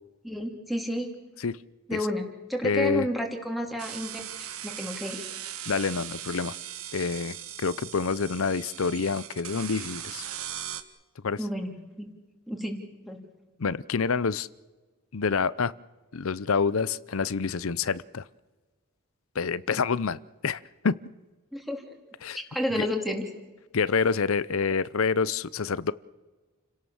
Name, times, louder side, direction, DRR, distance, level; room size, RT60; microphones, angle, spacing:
voice 1, 0.2-1.1 1.9-2.2 2.5-5.2 11.4-12.1 12.5-12.8 13.0-13.2 21.5-21.8 22.3-23.3, left 1 dB, ahead, 3 dB, 3.1 m, -31 dB
voice 2, 2.6-3.1 5.7-6.5 6.9-10.2 11.2-11.4 13.6-14.5 15.1-15.7 16.1-18.2 19.4-21.0 22.2-22.4 22.7-22.9 23.7-25.9, left 5 dB, 70° left, 18 dB, 0.6 m, -27 dB
sound 1, 3.8-10.8, right 10 dB, 80° right, 1.6 m, -39 dB
29.5 x 17.5 x 7.2 m, 1.2 s
head